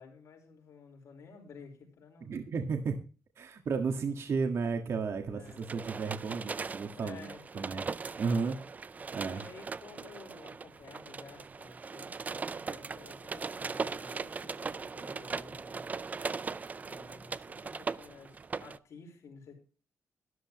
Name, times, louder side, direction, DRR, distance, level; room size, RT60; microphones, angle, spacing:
voice 1, 0.0-2.4 5.2-5.6 6.9-7.7 9.1-15.9 16.8-19.5, left 5 dB, 65° left, 2 dB, 4.8 m, -53 dB
voice 2, 2.2-3.0 3.4-9.4 13.3-13.5, right 5 dB, 55° right, 4 dB, 1.7 m, -34 dB
sound 1, 5.5-18.8, right 4 dB, 30° right, 0.5 m, -39 dB
13.0 x 11.5 x 3.1 m, 0.35 s
cardioid pair, 120°, 6 cm